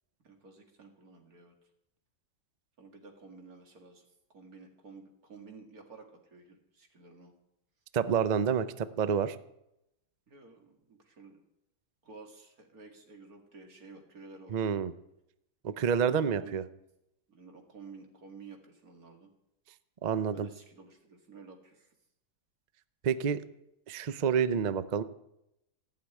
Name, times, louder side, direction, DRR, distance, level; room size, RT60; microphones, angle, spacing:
voice 1, 0.2-1.5 2.8-7.3 10.3-11.4 12.0-14.7 16.0-16.5 17.3-19.3 20.3-21.9, right 4 dB, 65° right, 3 dB, 2.5 m, -52 dB
voice 2, 7.9-9.4 14.5-14.9 15.6-16.6 20.0-20.5 23.0-23.4 23.9-25.0, right 7 dB, 80° right, 13 dB, 0.3 m, -28 dB
15.0 x 6.8 x 9.5 m, 0.85 s
omnidirectional pair, 1.7 m